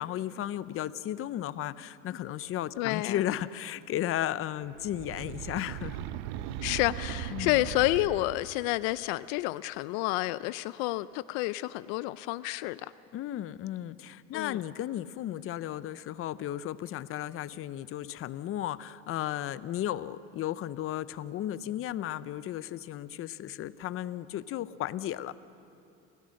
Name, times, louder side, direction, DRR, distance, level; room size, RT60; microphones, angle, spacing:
voice 1, 0.0-6.0 7.3-7.6 13.1-25.3, left 12 dB, 50° left, 16 dB, 0.7 m, -34 dB
voice 2, 2.8-3.2 6.6-12.9 14.3-14.6, left 18 dB, 90° left, 16 dB, 0.5 m, -30 dB
sound 1, 4.7-8.7, right 11 dB, 85° right, 0.7 m, -38 dB
28.5 x 15.5 x 6.5 m, 2.8 s
cardioid pair, 110°, 29 cm